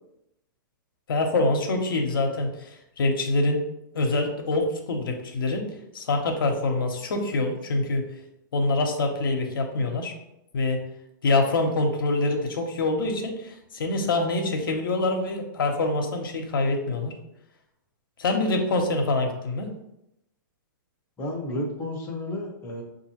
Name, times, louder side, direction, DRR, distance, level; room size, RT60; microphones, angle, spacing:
voice 1, 1.1-3.6 3.9-5.6 5.9-8.0 8.5-10.1 10.5-10.8 11.2-17.1 18.2-19.7, left 2 dB, 85° left, 3 dB, 0.9 m, -25 dB
voice 2, 21.2-22.8, left 1 dB, 20° left, -1 dB, 0.8 m, -32 dB
6.1 x 2.6 x 2.9 m, 0.83 s
hypercardioid pair, 150°, 11 cm